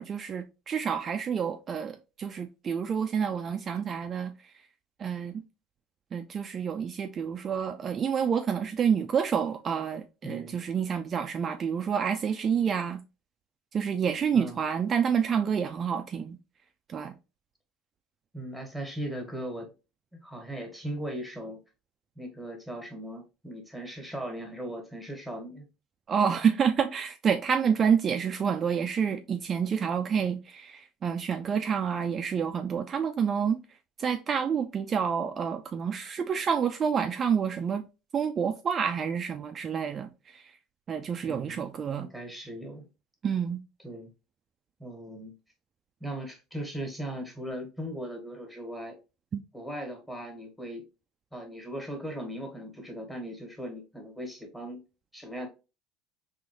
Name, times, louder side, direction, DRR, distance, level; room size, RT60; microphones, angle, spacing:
voice 1, 0.0-4.3 5.0-5.3 6.1-13.0 13.7-16.4 16.9-17.1 26.1-33.6 34.0-37.8 38.1-40.4 40.9-42.1 43.2-43.6 49.3-49.4, right 7 dB, 35° right, 0.3 m, -28 dB
voice 2, 10.2-10.6 14.3-14.6 18.3-19.7 20.1-21.6 22.1-25.6 41.2-41.7 42.0-42.9 43.8-44.1 44.8-45.3 46.0-49.0 49.5-50.8 51.3-54.8 55.1-55.5, right 1 dB, 5° left, 1.5 m, -38 dB
3.8 x 2.9 x 2.9 m
supercardioid pair, 115°, 0 cm